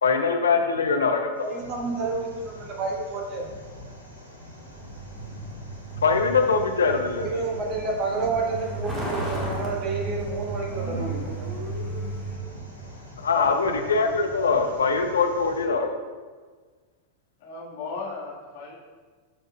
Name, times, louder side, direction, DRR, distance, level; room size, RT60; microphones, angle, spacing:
voice 1, 0.0-1.5 6.0-7.4 13.2-15.9, left 4 dB, 70° left, 5 dB, 0.7 m, -22 dB
sound 1, 1.3-15.6, equal, 85° right, 1.3 m, -44 dB
voice 2, 1.4-3.4 7.2-11.7, right 3 dB, 35° right, -1 dB, 1.5 m, -30 dB
Truck, 4.7-12.3, right 2 dB, 15° right, 1.7 m, -34 dB
sound 2, 10.7-12.7, left 1 dB, 5° left, 2.0 m, -40 dB
voice 3, 17.4-18.7, left 4 dB, 50° left, -4 dB, 1.7 m, -35 dB
11.0 x 5.3 x 2.3 m, 1.5 s
figure-of-eight pair, 90°, 0 cm